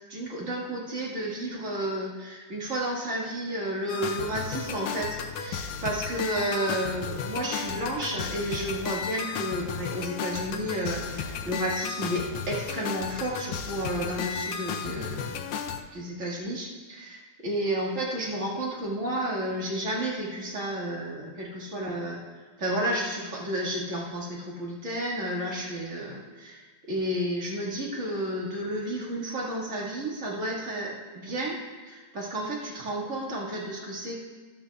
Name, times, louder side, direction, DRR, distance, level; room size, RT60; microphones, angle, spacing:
voice 1, 0.1-15.5 15.9-22.2 22.6-31.6 31.8-34.2, right 1 dB, 30° right, -4 dB, 1.8 m, -32 dB
sound 1, 3.9-15.8, left 7 dB, 80° left, 1.3 m, -34 dB
14.5 x 12.5 x 2.3 m, 1.4 s
omnidirectional pair, 3.4 m